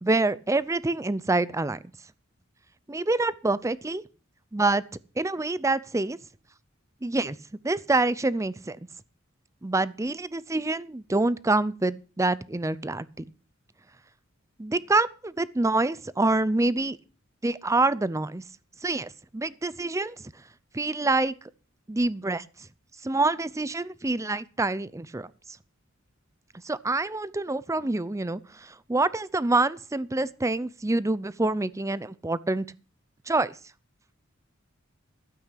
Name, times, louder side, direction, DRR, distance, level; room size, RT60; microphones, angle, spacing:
voice 1, 0.0-1.8 2.9-4.0 4.5-4.8 5.2-6.2 7.0-7.4 7.6-8.8 9.6-13.1 14.6-17.0 17.4-18.4 18.8-20.3 20.7-21.3 21.9-22.4 23.0-25.3 26.6-32.7 33.3-33.5, right 2 dB, 15° right, 0.5 m, -26 dB
12.5 x 9.0 x 5.8 m
head